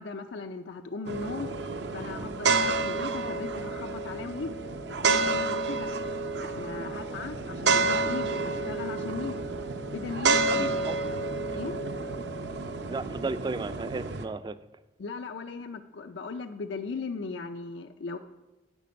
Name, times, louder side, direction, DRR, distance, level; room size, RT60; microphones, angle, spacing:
voice 1, 0.0-1.5 1.9-4.6 4.9-5.9 6.4-9.4 9.9-11.0 11.5-11.8 15.0-18.2, left 4 dB, 85° left, 0.5 m, -37 dB
sound 1, 1.0-14.2, right 3 dB, 70° right, 0.7 m, -29 dB
voice 2, 10.5-11.0 12.2-12.3 12.9-14.6, right 3 dB, 25° right, 0.3 m, -34 dB
11.0 x 8.5 x 5.2 m
head